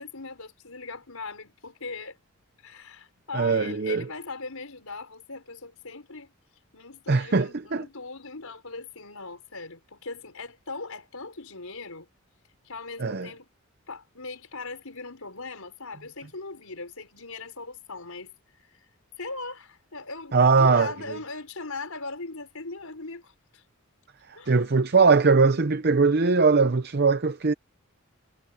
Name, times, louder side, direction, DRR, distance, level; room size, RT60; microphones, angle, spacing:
voice 1, 0.0-2.2 2.6-6.3 6.7-12.1 12.6-13.5 13.9-18.3 18.6-18.8 19.2-23.6 24.3-24.6, left 3 dB, 75° left, 4.8 m, -39 dB
voice 2, 3.3-4.0 7.1-7.8 13.0-13.3 20.3-20.9 24.3-27.5, right 4 dB, 45° right, 0.7 m, -21 dB
head